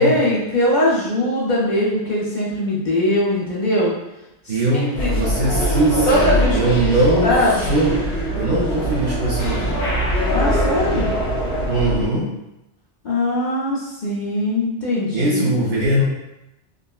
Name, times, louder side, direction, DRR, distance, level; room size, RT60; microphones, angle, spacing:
voice 1, 0.0-3.9 4.7-5.2 6.1-6.6 7.2-7.7 10.3-11.1 13.0-15.5, left 1 dB, 55° left, -6 dB, 0.6 m, -20 dB
voice 2, 4.5-8.0 8.3-9.9 11.7-12.3 15.1-16.0, right 1 dB, 55° right, -5 dB, 0.6 m, -20 dB
sound 1, 4.9-12.0, equal, 75° left, 1.1 m, -22 dB
3.6 x 2.0 x 2.2 m, 0.92 s
omnidirectional pair, 1.2 m